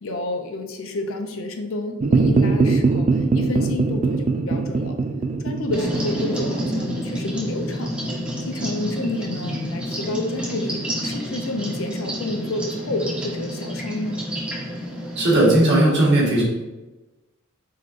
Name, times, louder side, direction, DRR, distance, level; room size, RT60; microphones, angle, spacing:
voice 1, 0.0-4.9 5.4-8.0 8.4-14.2, left 2 dB, 70° left, 4 dB, 0.6 m, -30 dB
sound 1, 2.0-8.6, right 4 dB, 35° right, 0.3 m, -22 dB
sound 2, 5.7-15.5, equal, 5° right, 0.8 m, -29 dB
voice 2, 15.1-16.4, right 1 dB, 55° right, -4 dB, 1.5 m, -17 dB
4.1 x 4.0 x 2.5 m, 1.1 s
head